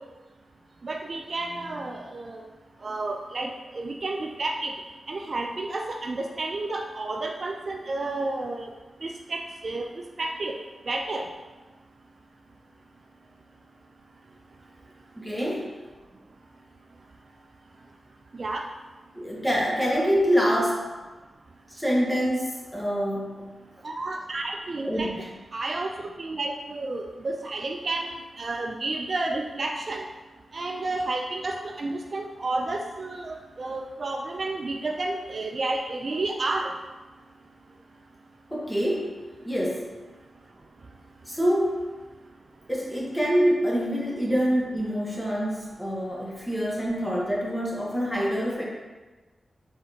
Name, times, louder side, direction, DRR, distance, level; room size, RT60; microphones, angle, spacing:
voice 1, 0.8-2.4 2.8-4.7 5.1-8.7 9.0-9.9 10.2-10.6 10.9-11.3 18.3-18.7 23.8-25.1 25.5-30.0 30.5-36.7, right 2 dB, 55° right, 3 dB, 0.3 m, -31 dB
voice 2, 15.2-15.7 19.1-20.9 21.7-23.6 24.8-25.3 38.5-39.9 41.3-41.8 42.7-48.6, equal, 5° left, -4 dB, 1.1 m, -26 dB
4.0 x 3.8 x 2.7 m, 1.2 s
cardioid pair, 70°, 0 cm